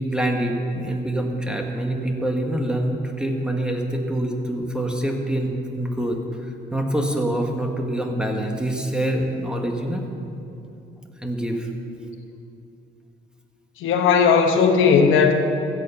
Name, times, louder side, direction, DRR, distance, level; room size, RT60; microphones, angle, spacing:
voice 1, 0.0-10.0 11.2-11.7, right 1 dB, 5° right, 2 dB, 1.5 m, -25 dB
voice 2, 13.8-15.3, left 6 dB, 85° left, 5 dB, 1.0 m, -16 dB
15.5 x 7.0 x 5.7 m, 2.8 s
cardioid pair, 90°, 20 cm